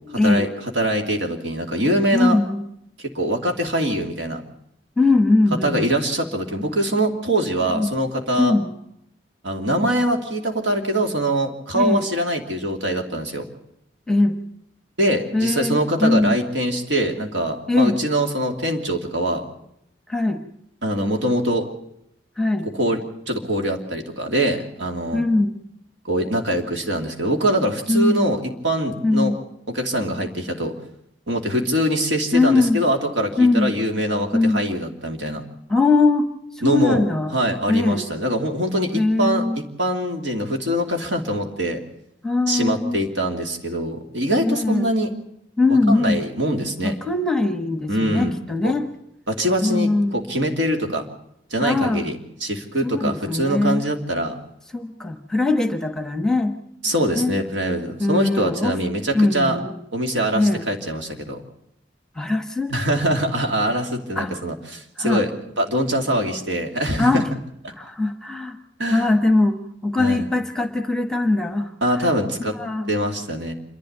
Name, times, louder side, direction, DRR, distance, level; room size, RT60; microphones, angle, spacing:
voice 1, 0.1-0.5 2.1-2.6 5.0-5.8 7.7-7.9 8.4-8.7 11.7-12.1 14.1-14.4 15.3-16.3 17.7-18.0 20.1-20.4 22.4-22.7 25.1-25.6 27.9-28.2 29.0-29.4 32.3-32.8 33.4-33.7 34.3-34.6 35.7-36.3 36.6-37.3 37.7-38.1 38.9-39.6 42.2-43.0 44.4-44.9 45.6-46.2 46.8-48.9 49.6-50.2 51.6-52.1 52.8-53.8 54.7-56.5 57.1-57.4 58.0-58.8 59.1-59.7 60.3-60.7 62.2-62.7 64.2-64.3 65.0-65.2 67.0-67.2 67.8-68.6 68.9-71.7 72.0-72.1 72.6-72.9, left 2 dB, 5° left, 7 dB, 1.3 m, -20 dB
voice 2, 0.7-2.4 3.1-4.4 5.6-8.5 9.4-13.4 15.0-19.4 20.8-21.6 22.7-23.0 23.3-25.2 26.1-29.4 29.7-30.7 31.3-35.4 36.6-37.0 37.3-41.8 42.5-45.1 45.9-47.0 47.9-48.4 48.6-48.7 49.3-51.1 51.5-54.4 56.8-59.6 59.9-61.4 62.7-65.3 65.6-67.2 68.8-69.1 70.0-70.3 71.8-72.5 72.9-73.5, right 1 dB, 80° right, 3 dB, 2.8 m, -23 dB
27.5 x 12.0 x 8.0 m, 0.78 s
head